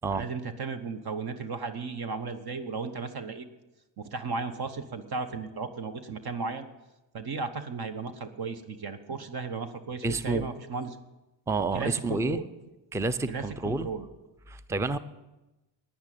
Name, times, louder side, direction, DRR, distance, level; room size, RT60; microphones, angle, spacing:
voice 1, 0.1-3.5 4.0-6.7 7.1-11.0 11.7-12.5 13.3-14.1, right 4 dB, 50° right, 9 dB, 1.1 m, -35 dB
voice 2, 10.0-10.5 11.5-12.4 12.9-13.9 14.5-15.0, right 3 dB, 5° right, 14 dB, 0.5 m, -29 dB
10.0 x 9.8 x 7.6 m, 1.0 s
cardioid pair, 90°, 47 cm